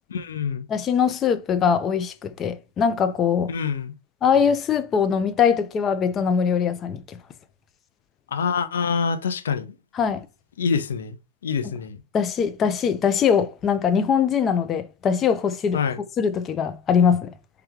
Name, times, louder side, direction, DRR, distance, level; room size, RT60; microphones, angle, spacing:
voice 1, 0.1-0.7 3.5-3.9 8.3-9.7 10.6-11.2 11.4-12.0 15.7-16.0, left 6 dB, 80° left, 0.7 m, -25 dB
voice 2, 0.7-3.5 4.2-7.2 9.9-10.3 11.6-11.7 12.1-15.8 16.2-17.3, left 7 dB, 25° left, 0.4 m, -22 dB
3.4 x 3.0 x 3.5 m
hypercardioid pair, 135°, 0 cm